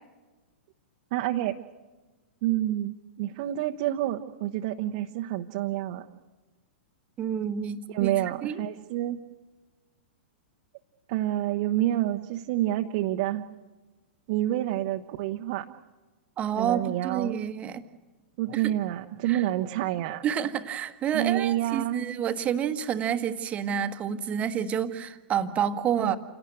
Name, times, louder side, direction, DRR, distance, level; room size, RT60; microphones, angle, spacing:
voice 1, 1.1-1.6 2.4-6.1 7.9-9.2 11.1-13.5 14.3-15.7 16.6-17.4 18.4-20.2 21.1-22.0 26.0-26.2, right 14 dB, 40° right, 3 dB, 1.0 m, -28 dB
voice 2, 7.2-8.1 8.4-8.6 16.4-17.8 18.5-18.7 19.2-19.4 20.2-26.2, right 8 dB, 25° right, 9 dB, 1.3 m, -29 dB
28.5 x 18.0 x 7.8 m, 1.2 s
figure-of-eight pair, 100°, 6 cm